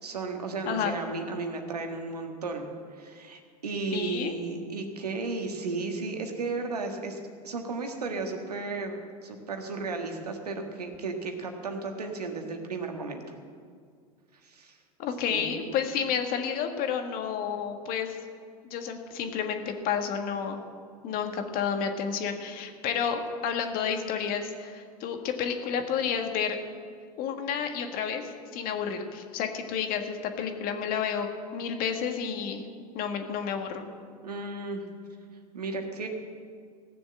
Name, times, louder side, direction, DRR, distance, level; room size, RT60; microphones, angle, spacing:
voice 1, 0.0-2.7 2.9-7.2 7.4-13.2 14.4-14.8 15.3-15.6 34.2-34.9 35.5-36.1, right 3 dB, 90° right, 4 dB, 1.6 m, -34 dB
voice 2, 0.6-1.0 3.9-4.3 15.0-18.2 18.6-20.6 21.0-26.6 27.2-32.6 32.9-33.9, left 7 dB, 50° left, 6 dB, 1.7 m, -30 dB
16.5 x 7.0 x 7.7 m, 2.1 s
hypercardioid pair, 90°, 20 cm